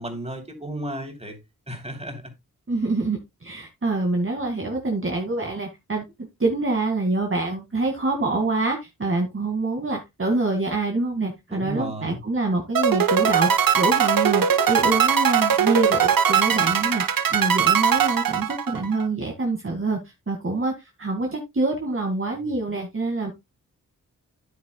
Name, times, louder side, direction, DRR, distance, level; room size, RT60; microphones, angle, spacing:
voice 1, 0.0-1.4 1.7-2.3 11.5-12.2, right 1 dB, 20° right, 3.4 m, -33 dB
voice 2, 2.7-6.0 6.4-23.3, right 2 dB, 35° right, 2.1 m, -26 dB
sound 1, 12.8-19.1, right 8 dB, 70° right, 1.0 m, -20 dB
9.6 x 9.0 x 2.2 m
supercardioid pair, 40°, 35 cm